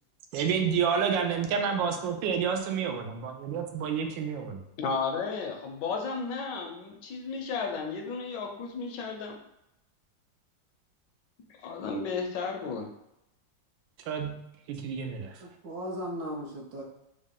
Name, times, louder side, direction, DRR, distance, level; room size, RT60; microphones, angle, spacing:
voice 1, 0.3-4.6 14.1-14.4 14.7-15.3, right 6 dB, 85° right, 4 dB, 1.3 m, -29 dB
voice 2, 4.8-9.4 11.6-12.9, left 4 dB, 75° left, 3 dB, 1.2 m, -33 dB
voice 3, 15.4-16.8, equal, 70° right, -1 dB, 1.0 m, -37 dB
3.7 x 2.1 x 3.5 m, 0.85 s
omnidirectional pair, 2.0 m